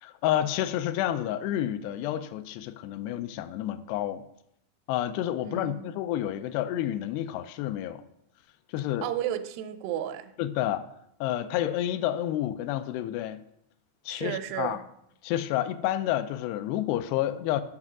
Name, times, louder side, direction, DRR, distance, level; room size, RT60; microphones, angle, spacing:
voice 1, 0.0-4.2 4.9-8.0 8.7-9.1 10.4-10.9 11.2-13.4 14.1-14.8 15.2-17.6, left 12 dB, 90° left, 2.7 m, -29 dB
voice 2, 5.4-6.0 9.0-10.3 14.1-14.8, right 11 dB, 85° right, 2.6 m, -33 dB
7.7 x 5.9 x 6.0 m
omnidirectional pair, 4.7 m